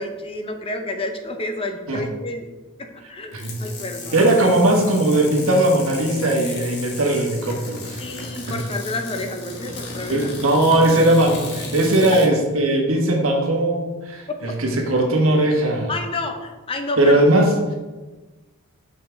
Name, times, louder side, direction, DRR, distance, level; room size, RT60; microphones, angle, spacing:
voice 1, 0.0-2.4 2.8-4.2 8.0-10.3 15.9-17.2, left 2 dB, 25° left, 5 dB, 0.6 m, -30 dB
sound 1, 3.3-12.3, left 2 dB, 50° left, 1.3 m, -34 dB
voice 2, 4.1-8.0 8.5-8.6 10.1-15.9 17.0-17.7, right 1 dB, 70° right, 1 dB, 1.3 m, -19 dB
6.5 x 5.6 x 3.4 m, 1.2 s
head